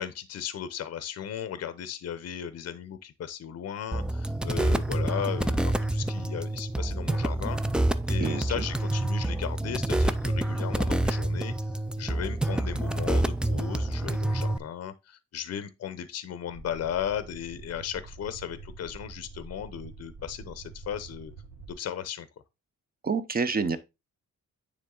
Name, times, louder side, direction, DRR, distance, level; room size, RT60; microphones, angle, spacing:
voice 1, 0.0-7.6 8.1-11.5 12.0-21.3 21.8-22.3, left 9 dB, 50° left, 0.7 m, -36 dB
sound 1, 3.9-14.6, right 1 dB, 5° right, 0.3 m, -27 dB
voice 2, 8.2-8.6 23.0-23.8, right 5 dB, 30° right, 0.7 m, -28 dB
sound 2, 16.5-21.7, right 4 dB, 75° right, 1.7 m, -46 dB
9.5 x 3.5 x 3.8 m
cardioid pair, 135°, 32 cm